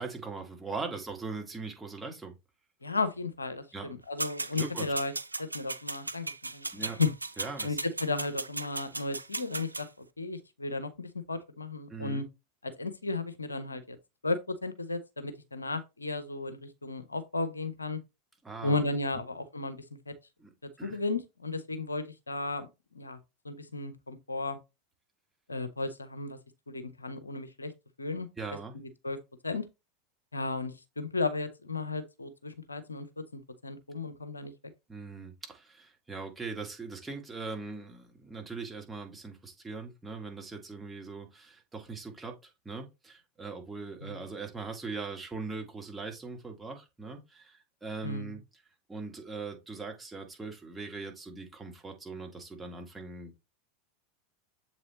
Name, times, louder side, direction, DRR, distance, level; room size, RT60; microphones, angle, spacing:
voice 1, 0.0-2.4 3.7-4.0 4.6-4.9 6.7-7.0 7.4-7.8 11.9-12.2 18.4-18.8 19.1-19.2 20.4-21.0 28.4-28.7 34.9-48.4 48.9-53.4, right 4 dB, 10° right, 1.8 m, -41 dB
voice 2, 2.8-5.1 5.4-7.1 7.6-9.9 10.2-12.2 12.6-14.0 14.2-18.0 18.6-20.1 20.6-22.7 22.9-23.2 23.4-24.6 25.5-26.4 26.7-27.7 28.0-28.3 28.7-29.2 29.4-29.6 30.3-33.1 33.3-34.5 44.0-44.3 48.0-48.4, left 3 dB, 85° left, 0.8 m, -34 dB
sound 1, 4.2-9.9, right 2 dB, 85° right, 0.3 m, -36 dB
7.3 x 4.1 x 3.1 m
figure-of-eight pair, 85°, 0 cm